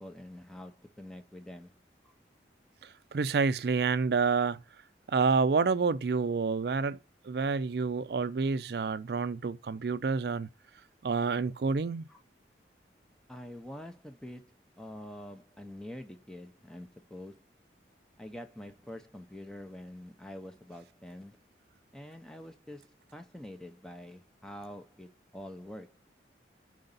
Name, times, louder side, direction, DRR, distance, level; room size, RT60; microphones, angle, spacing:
voice 1, 0.0-1.7 2.0-2.1 12.1-12.2 13.3-17.4 18.2-21.4 21.9-25.9, left 1 dB, 5° left, 0.5 m, -46 dB
voice 2, 2.8-4.6 5.1-7.0 7.2-10.5 11.0-12.0, right 4 dB, 65° right, 0.4 m, -28 dB
4.9 x 3.9 x 5.3 m
head